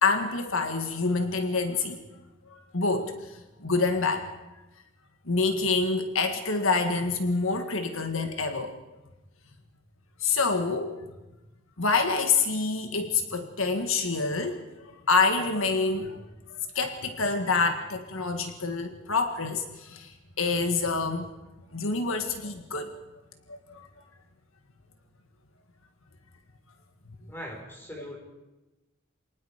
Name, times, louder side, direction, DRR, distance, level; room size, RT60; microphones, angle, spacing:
voice 1, 0.0-2.0 2.5-4.3 5.3-8.7 10.2-10.9 11.8-14.6 15.1-16.2 16.5-21.3 21.7-22.9 23.5-23.9, left 4 dB, 75° left, 6 dB, 1.7 m, -27 dB
voice 2, 27.3-28.2, equal, 10° left, -1 dB, 5.3 m, -40 dB
27.0 x 19.0 x 5.0 m, 1.0 s
head